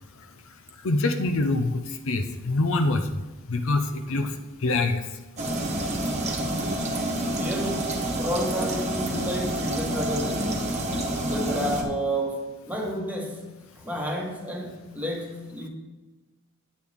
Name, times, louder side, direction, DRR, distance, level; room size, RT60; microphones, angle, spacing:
voice 1, 0.8-1.8 2.1-3.0 3.5-4.3 4.6-5.0, left 2 dB, 60° left, 7 dB, 0.6 m, -24 dB
sound 1, 5.4-11.8, right 1 dB, 30° right, 1.3 m, -28 dB
voice 2, 7.3-7.9 8.2-10.8 11.3-15.7, equal, 5° right, 0 dB, 1.3 m, -31 dB
9.7 x 8.4 x 3.6 m, 1.2 s
head